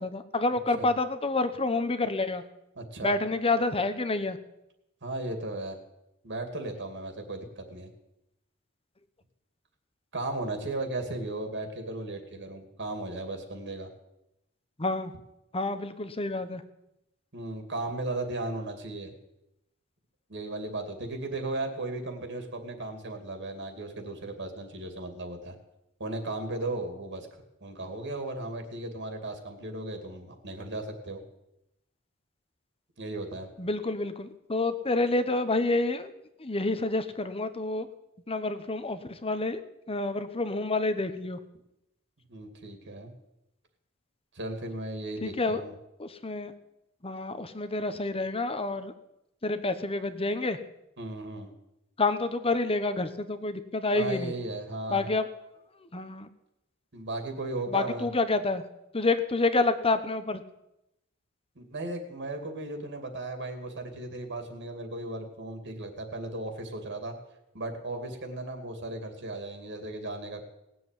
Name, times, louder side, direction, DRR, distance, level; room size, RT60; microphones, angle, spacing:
voice 1, 0.0-2.4 3.0-4.4 14.8-15.1 15.5-16.6 33.6-36.1 36.4-37.9 38.3-39.6 39.9-41.4 45.2-45.6 46.0-46.5 47.0-48.9 49.4-50.6 52.0-54.3 54.9-55.3 55.9-56.3 57.7-58.6 58.9-60.4, left 2 dB, 30° left, 11 dB, 1.1 m, -28 dB
voice 2, 2.8-3.2 5.0-5.8 6.2-7.9 10.1-13.9 17.3-19.1 20.3-25.5 26.0-27.3 27.6-31.2 33.0-33.5 42.3-43.1 44.3-45.7 51.0-51.5 53.9-55.1 56.9-58.1 61.6-67.2 67.5-70.4, right 2 dB, 60° right, 5 dB, 2.6 m, -36 dB
18.5 x 7.9 x 9.1 m, 0.87 s
head